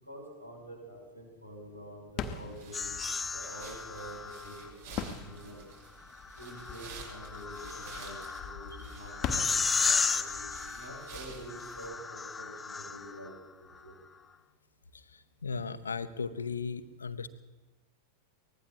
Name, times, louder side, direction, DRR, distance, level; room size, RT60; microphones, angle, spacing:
voice 1, 0.0-3.0 3.3-5.6 6.4-13.3 13.6-13.9, right 1 dB, 85° right, -1 dB, 7.4 m, -47 dB
sound 1, 2.1-12.7, left 6 dB, 35° left, 1.2 m, -43 dB
sound 2, 2.5-11.9, right 4 dB, 55° right, 5.4 m, -51 dB
sound 3, 2.7-4.7 6.1-13.3, left 5 dB, 15° left, 0.6 m, -34 dB
voice 2, 15.4-17.3, left 5 dB, 75° left, 13 dB, 0.8 m, -36 dB
23.5 x 19.5 x 2.9 m, 1.1 s
figure-of-eight pair, 90°, 0 cm